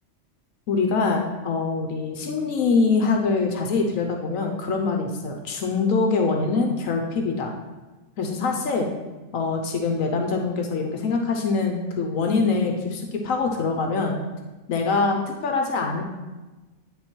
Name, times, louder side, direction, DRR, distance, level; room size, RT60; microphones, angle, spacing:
voice 1, 0.7-7.5 8.2-8.9 9.3-14.2 14.7-16.0, left 4 dB, 85° left, 3 dB, 1.3 m, -24 dB
9.7 x 3.9 x 4.4 m, 1.2 s
omnidirectional pair, 1.4 m